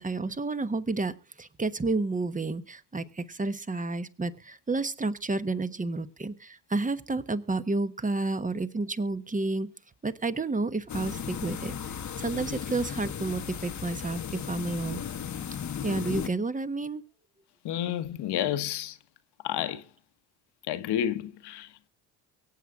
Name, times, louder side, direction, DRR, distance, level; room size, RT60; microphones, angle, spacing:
voice 1, 0.0-9.7 10.0-11.7 12.2-15.0 15.8-17.0, right 3 dB, 15° right, 1.2 m, -30 dB
sound 1, 10.9-16.3, left 8 dB, 40° left, 1.1 m, -36 dB
voice 2, 17.6-19.0 19.4-19.8 20.7-21.9, left 11 dB, 60° left, 1.2 m, -30 dB
23.5 x 8.2 x 3.7 m
hypercardioid pair, 60°, 45 cm